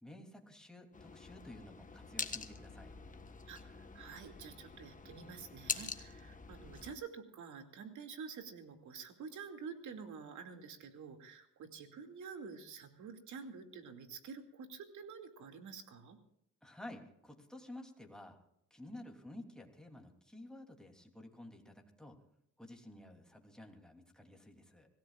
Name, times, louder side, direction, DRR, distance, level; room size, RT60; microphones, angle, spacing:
voice 1, 0.0-3.0 16.6-18.4 18.7-22.2 22.6-24.9, left 1 dB, ahead, 1 dB, 3.0 m, -52 dB
sound 1, 0.9-6.9, left 4 dB, 25° left, 1.4 m, -45 dB
voice 2, 3.5-16.2, right 6 dB, 75° right, 5 dB, 2.5 m, -49 dB
26.0 x 16.5 x 2.5 m, 0.77 s
cardioid pair, 90°, 30 cm